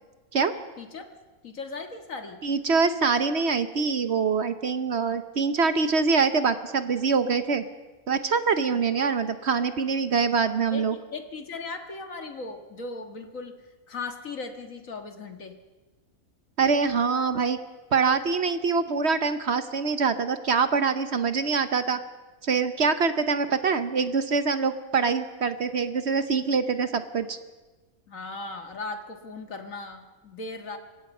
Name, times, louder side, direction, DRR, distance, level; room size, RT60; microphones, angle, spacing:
voice 1, 0.8-1.1 1.4-2.4 10.7-13.6 13.9-15.6 28.1-30.8, left 3 dB, 65° left, 6 dB, 2.2 m, -37 dB
voice 2, 2.4-7.6 8.1-11.0 16.6-17.6 17.9-22.0 22.4-27.4, right 5 dB, 55° right, 11 dB, 1.1 m, -24 dB
29.0 x 16.5 x 5.5 m, 1.2 s
omnidirectional pair, 1.5 m